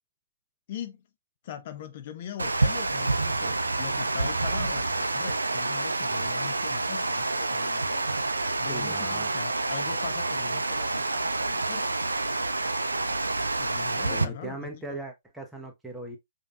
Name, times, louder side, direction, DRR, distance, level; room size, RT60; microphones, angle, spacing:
voice 1, 0.7-1.0 1.4-8.0 8.6-11.9 13.6-15.0, left 9 dB, 45° left, 0.5 m, -41 dB
Water, 2.4-14.2, right 2 dB, 85° right, 0.4 m, -28 dB
voice 2, 8.7-9.3 14.1-16.2, right 2 dB, 5° right, 0.9 m, -38 dB
4.9 x 2.8 x 2.4 m
figure-of-eight pair, 125°, 0 cm